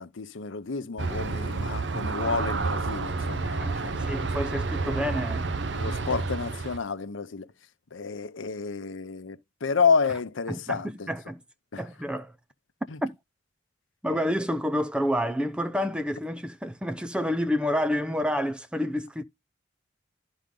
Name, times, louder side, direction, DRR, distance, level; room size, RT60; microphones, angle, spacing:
voice 1, 0.0-4.3 4.8-5.0 5.7-7.5 7.9-11.1 11.7-11.9 12.9-13.0 14.1-14.2, left 5 dB, 80° left, 0.7 m, -30 dB
Aircraft, 1.0-6.8, right 3 dB, 65° right, 0.7 m, -30 dB
voice 2, 3.6-5.5 10.5-11.4 11.8-12.3 13.0-13.2 14.0-19.2, equal, 5° right, 0.4 m, -29 dB
11.5 x 4.0 x 3.8 m
head